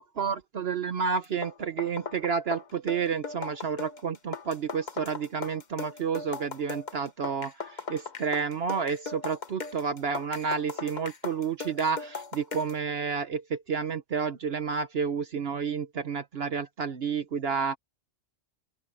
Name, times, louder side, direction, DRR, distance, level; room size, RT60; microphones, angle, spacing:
voice 1, 0.0-17.8, right 6 dB, 60° right, 1.1 m, -30 dB
sound 1, 1.2-12.8, left 4 dB, 40° left, 1.1 m, -39 dB
open air
omnidirectional pair, 1.2 m